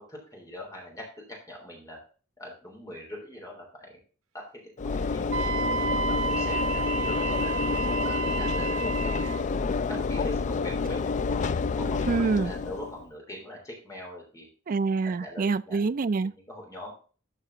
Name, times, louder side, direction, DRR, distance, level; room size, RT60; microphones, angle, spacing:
voice 1, 0.0-2.0 2.4-4.0 4.3-5.4 6.0-7.5 8.0-9.4 9.9-12.1 12.4-14.5 15.0-15.9 16.2-16.9, left 1 dB, 15° left, 3.4 m, -43 dB
Train / Engine / Alarm, 4.8-13.0, left 4 dB, 35° left, 0.3 m, -28 dB
Wind instrument woodwind instrument, 5.3-9.4, right 4 dB, 75° right, 0.9 m, -31 dB
voice 2, 12.1-12.5 14.7-16.3, right 4 dB, 40° right, 0.4 m, -26 dB
12.5 x 5.4 x 3.9 m
head